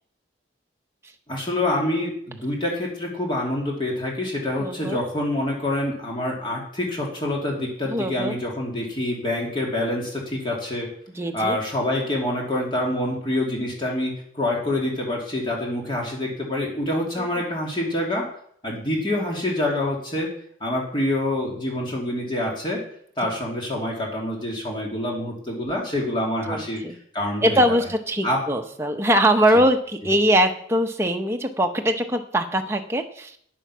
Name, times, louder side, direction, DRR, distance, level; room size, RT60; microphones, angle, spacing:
voice 1, 1.3-10.9 11.3-18.3 18.6-20.4 20.6-22.8 23.2-26.8 27.1-27.8 28.2-28.4, left 1 dB, 25° left, -2 dB, 2.5 m, -26 dB
voice 2, 4.6-5.0 7.9-8.4 11.1-11.6 17.2-17.3 26.5-26.9 27.4-33.4, equal, 15° right, 4 dB, 0.9 m, -22 dB
9.2 x 9.0 x 6.2 m, 0.64 s
head